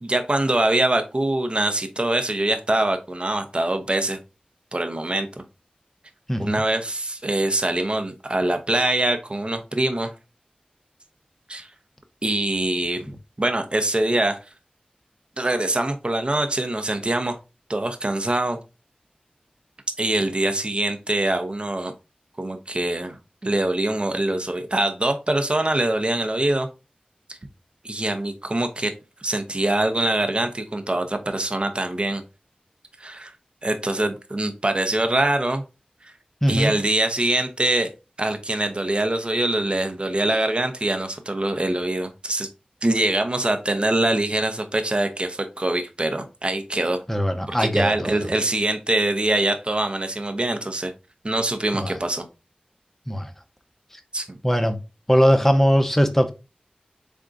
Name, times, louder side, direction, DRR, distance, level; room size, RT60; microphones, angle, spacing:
voice 1, 0.0-4.2 4.7-5.4 6.4-10.1 11.5-11.7 12.2-13.1 13.4-14.4 15.4-17.4 17.7-18.6 20.0-21.9 22.4-26.7 27.3-27.4 27.8-28.9 29.2-32.2 33.0-33.3 33.6-35.6 36.0-36.1 36.5-37.9 38.2-42.5 42.8-47.0 47.6-50.9 51.2-52.2 54.1-54.4, right 1 dB, 40° right, 0.7 m, -24 dB
voice 2, 6.3-6.6 13.1-13.2 36.4-36.7 47.1-48.2 51.7-52.0 53.1-53.3 53.9-54.0 54.4-54.8 55.1-56.3, equal, 10° left, 0.7 m, -20 dB
3.7 x 3.5 x 2.5 m
wide cardioid pair, 45°, 3 cm